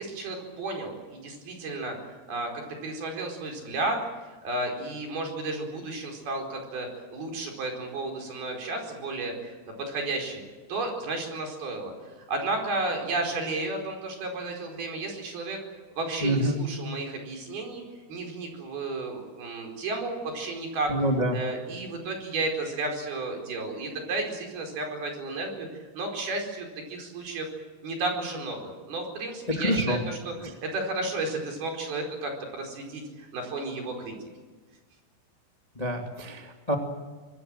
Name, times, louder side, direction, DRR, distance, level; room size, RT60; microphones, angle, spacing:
voice 1, 0.0-4.0 4.4-10.4 10.7-15.6 16.0-17.8 18.1-20.9 21.3-27.5 27.8-34.1, right 2 dB, 60° right, 3 dB, 6.6 m, -33 dB
voice 2, 16.2-16.6 20.9-21.3 29.5-30.0 30.4-30.5 35.8-36.7, equal, 15° left, 2 dB, 1.7 m, -26 dB
26.0 x 19.5 x 7.8 m, 1.4 s
omnidirectional pair, 4.9 m